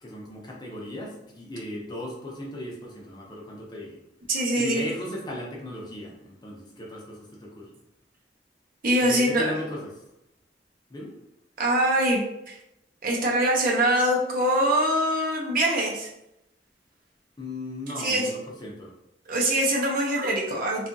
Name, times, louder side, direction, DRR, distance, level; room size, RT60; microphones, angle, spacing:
voice 1, 0.0-4.0 4.6-7.7 9.0-9.9 10.9-11.1 17.4-18.9, left 1 dB, 25° left, -2 dB, 0.6 m, -36 dB
voice 2, 4.3-4.8 8.8-9.5 11.6-12.6 13.0-16.1 18.0-18.3 19.3-20.9, right 1 dB, 55° right, -1 dB, 0.6 m, -23 dB
2.7 x 2.3 x 2.6 m, 0.85 s
head